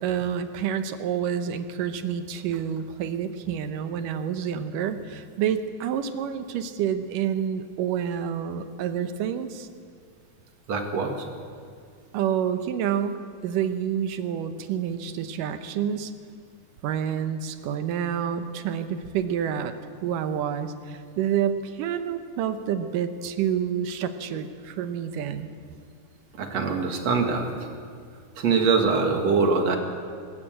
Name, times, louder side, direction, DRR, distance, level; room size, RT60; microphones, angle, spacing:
voice 1, 0.0-9.7 12.1-16.1 16.8-19.7 20.0-25.5, right 8 dB, 80° right, 9 dB, 2.6 m, -28 dB
voice 2, 10.7-11.2 26.4-27.5 28.4-29.8, right 4 dB, 55° right, 3 dB, 2.8 m, -23 dB
22.0 x 14.0 x 8.9 m, 2.3 s
omnidirectional pair, 3.9 m